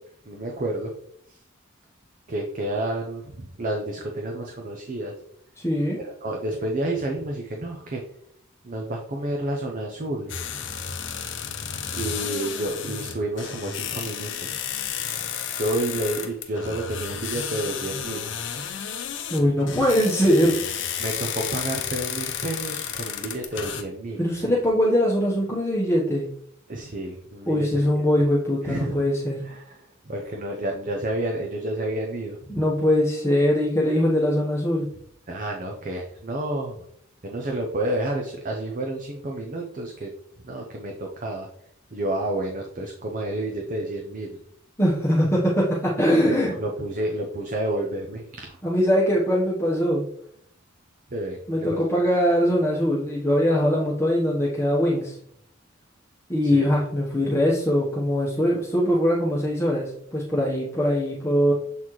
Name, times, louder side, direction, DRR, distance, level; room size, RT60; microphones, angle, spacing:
voice 1, 0.2-0.9 1.3-1.4 2.3-5.1 6.0-8.0 8.6-10.4 11.9-14.6 15.6-18.2 21.0-24.3 26.7-28.0 28.6-29.0 29.4-32.6 35.3-36.9 37.2-40.1 40.4-41.5 41.9-44.4 46.3-48.6 51.1-51.8 56.4-56.7, right 1 dB, 40° right, 1 dB, 0.7 m, -30 dB
voice 2, 5.6-6.0 19.3-20.6 24.2-26.3 27.5-29.4 32.5-34.9 44.8-46.5 48.6-50.1 51.5-55.2 56.3-61.5, equal, 15° left, -6 dB, 1.0 m, -22 dB
sound 1, 10.3-23.8, left 8 dB, 60° left, 0.7 m, -32 dB
7.2 x 4.2 x 3.1 m, 0.69 s
head